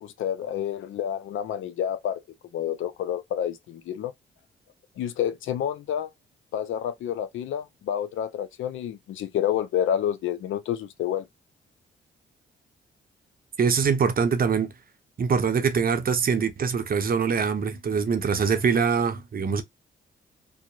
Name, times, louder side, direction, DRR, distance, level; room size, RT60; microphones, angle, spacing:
voice 1, 0.0-2.2 2.5-4.1 5.0-6.1 6.5-11.3, left 10 dB, 75° left, 0.5 m, -29 dB
voice 2, 13.6-14.7 15.2-19.6, right 6 dB, 45° right, 0.6 m, -23 dB
2.7 x 2.0 x 2.3 m
cardioid pair, 70°, 20 cm